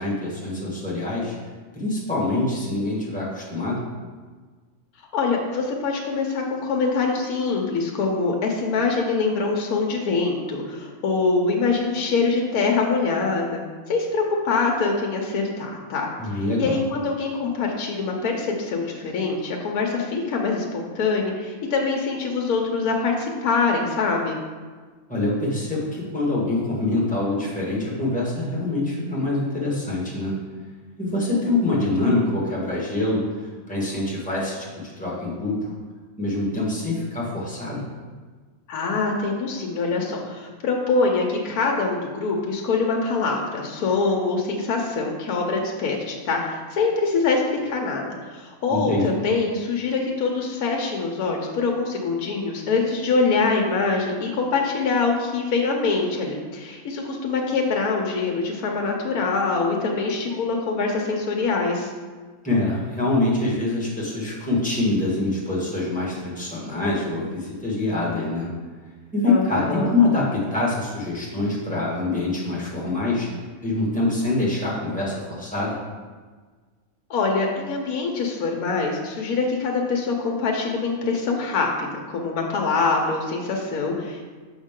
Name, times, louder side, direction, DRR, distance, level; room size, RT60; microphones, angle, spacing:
voice 1, 0.0-1.4 1.7-3.8 16.2-16.8 25.1-30.3 31.0-33.2 33.7-35.7 36.2-37.8 48.7-49.1 62.4-68.5 69.1-73.3 73.6-75.8, left 2 dB, 5° left, -5 dB, 1.5 m, -25 dB
voice 2, 5.1-13.6 13.9-24.4 38.7-61.9 69.3-69.9 77.1-84.3, left 4 dB, 85° left, 0 dB, 1.2 m, -24 dB
6.3 x 5.5 x 3.7 m, 1.5 s
omnidirectional pair, 1.5 m